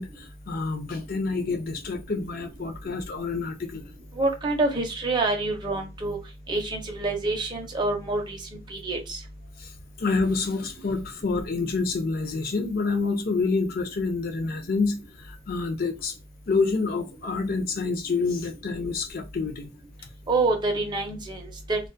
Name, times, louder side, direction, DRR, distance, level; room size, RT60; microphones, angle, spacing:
voice 1, 0.0-3.8 9.6-9.7 10.0-16.1 16.5-19.7, left 4 dB, 45° left, 0.5 m, -28 dB
voice 2, 4.2-6.2 6.5-8.4 8.7-9.2 20.3-21.9, right 2 dB, 20° right, 0.5 m, -27 dB
2.2 x 2.2 x 2.5 m
head